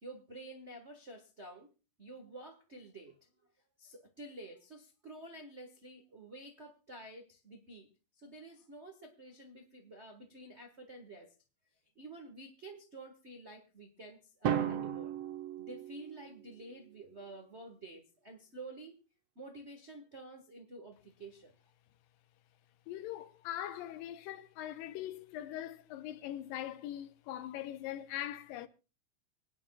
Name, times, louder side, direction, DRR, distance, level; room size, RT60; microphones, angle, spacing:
voice 1, 0.0-1.7 2.0-3.2 3.8-7.9 8.1-11.3 11.9-15.1 15.6-19.0 19.3-21.5, right 2 dB, 70° right, 0.6 m, -50 dB
Drum, 14.4-16.5, right 9 dB, 85° right, 1.3 m, -35 dB
voice 2, 22.9-28.7, left 12 dB, 90° left, 2.6 m, -41 dB
25.0 x 9.9 x 2.3 m
omnidirectional pair, 4.0 m